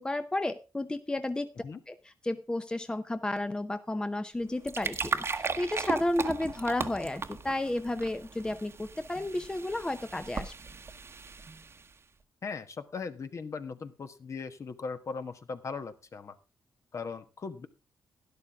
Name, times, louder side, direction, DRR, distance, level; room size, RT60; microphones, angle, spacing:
voice 1, 0.0-1.5 1.9-10.5, left 1 dB, 10° left, 10 dB, 0.7 m, -32 dB
sound 1, 4.4-11.9, right 4 dB, 40° right, 1.1 m, -37 dB
voice 2, 12.4-16.3 16.9-17.7, left 5 dB, 50° left, 9 dB, 1.3 m, -39 dB
12.0 x 11.0 x 3.5 m, 0.31 s
cardioid pair, 90°, 7 cm